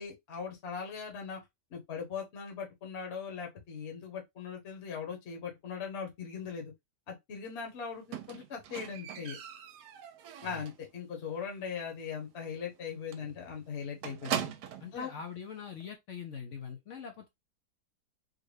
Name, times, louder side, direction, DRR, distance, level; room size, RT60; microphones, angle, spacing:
voice 1, 0.0-1.4 1.7-6.7 7.1-9.4 10.4-14.5 14.9-15.1, left 6 dB, 45° left, 1.1 m, -40 dB
Squeak, 8.1-10.9 11.2-11.6 11.9-12.0 12.4-12.5 12.7-12.9 13.1-15.0 15.8-15.9, right 10 dB, 75° right, 1.1 m, -40 dB
voice 2, 14.8-17.3, left 7 dB, 65° left, 0.7 m, -43 dB
3.8 x 2.2 x 3.2 m
omnidirectional pair, 1.8 m